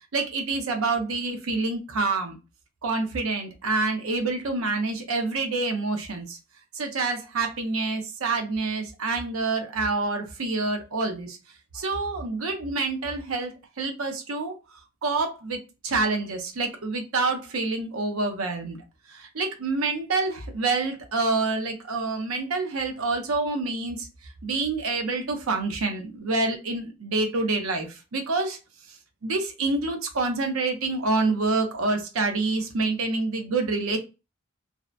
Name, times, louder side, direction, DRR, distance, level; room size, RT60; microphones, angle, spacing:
voice 1, 0.1-2.4 2.8-6.4 6.7-11.4 11.7-14.5 15.0-18.8 19.1-24.1 24.4-28.6 29.2-34.0, right 3 dB, 90° right, 0.6 m, -27 dB
2.8 x 2.1 x 2.3 m
head